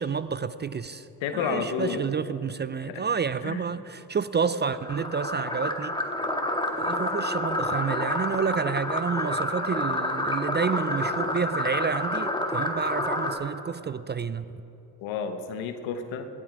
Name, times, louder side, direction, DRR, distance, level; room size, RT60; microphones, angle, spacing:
voice 1, 0.0-1.1 1.3-6.0 6.7-14.4, right 6 dB, 25° right, 14 dB, 0.4 m, -29 dB
voice 2, 1.2-2.1 2.9-3.0 3.4-3.6 15.0-16.3, left 6 dB, 85° left, 8 dB, 1.1 m, -31 dB
sound 1, 4.7-13.4, left 1 dB, 10° left, 1.7 m, -29 dB
19.5 x 8.5 x 5.1 m, 2.9 s
supercardioid pair, 55°, 46 cm